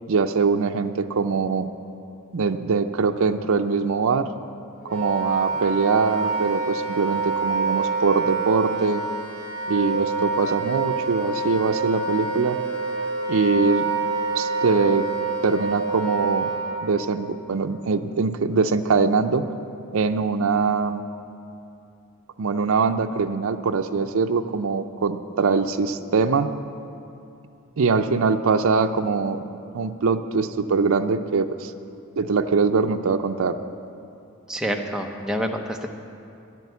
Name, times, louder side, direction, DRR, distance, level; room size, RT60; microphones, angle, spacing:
voice 1, 0.1-1.7 2.3-4.3 4.9-9.0 9.7-12.6 13.3-13.9 14.4-15.1 15.4-16.5 16.8-19.4 19.9-21.1 22.4-26.5 27.8-29.4 29.7-31.7 32.2-33.6, right 4 dB, 80° right, 7 dB, 0.5 m, -22 dB
Wind instrument woodwind instrument, 4.8-16.8, right 4 dB, 60° left, 2.3 m, -27 dB
voice 2, 34.5-35.9, equal, 5° right, 2 dB, 0.7 m, -27 dB
10.5 x 9.1 x 8.1 m, 2.6 s
head